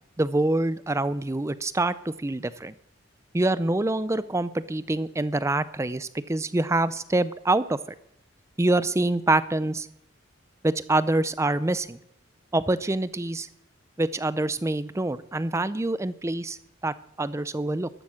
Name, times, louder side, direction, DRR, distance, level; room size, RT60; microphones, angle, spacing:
voice 1, 0.2-2.7 3.3-7.8 8.6-9.9 10.6-12.0 12.5-13.5 14.0-16.6 16.8-17.9, right 2 dB, 15° right, 16 dB, 0.4 m, -25 dB
13.0 x 12.0 x 6.4 m, 0.76 s
head